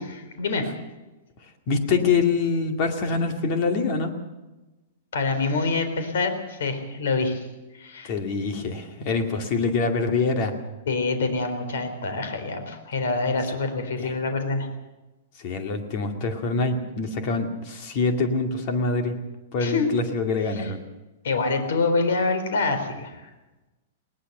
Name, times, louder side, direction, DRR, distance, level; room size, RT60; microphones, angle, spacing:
voice 1, 0.4-0.7 5.1-7.4 7.7-8.1 10.9-14.7 19.6-19.9 20.6-20.7 21.2-23.2, left 3 dB, 75° left, 7 dB, 4.0 m, -26 dB
voice 2, 1.7-4.1 8.0-10.5 14.0-14.1 15.4-19.1 19.5-20.8, left 4 dB, 35° left, 5 dB, 2.4 m, -25 dB
20.0 x 19.5 x 6.8 m, 1.1 s
supercardioid pair, 175°, 0 cm